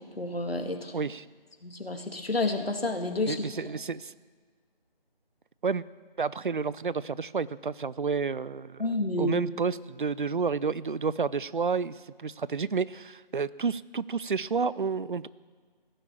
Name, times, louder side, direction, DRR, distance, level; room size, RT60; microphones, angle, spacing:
voice 1, 0.2-0.9 1.6-3.4 8.8-9.4, left 2 dB, 90° left, 5 dB, 2.3 m, -29 dB
voice 2, 0.9-1.3 3.3-4.1 5.6-5.8 6.2-8.9 9.2-15.3, right 5 dB, 60° right, 19 dB, 0.5 m, -30 dB
17.0 x 11.0 x 7.5 m, 1.5 s
figure-of-eight pair, 160°, 29 cm